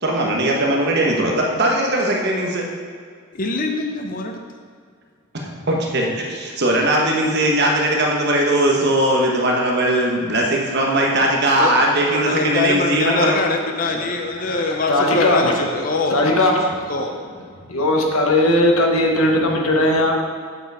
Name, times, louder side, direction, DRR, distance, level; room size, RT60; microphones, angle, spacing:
voice 1, 0.0-2.6 5.5-13.4, right 1 dB, 50° right, -1 dB, 1.2 m, -19 dB
voice 2, 3.3-4.3 11.6-11.7 12.1-16.1 16.9-17.1, left 3 dB, 40° left, 4 dB, 0.6 m, -23 dB
voice 3, 13.8-17.1 17.7-20.1, left 1 dB, 80° left, 1 dB, 1.3 m, -19 dB
7.7 x 7.0 x 4.8 m, 2.1 s
head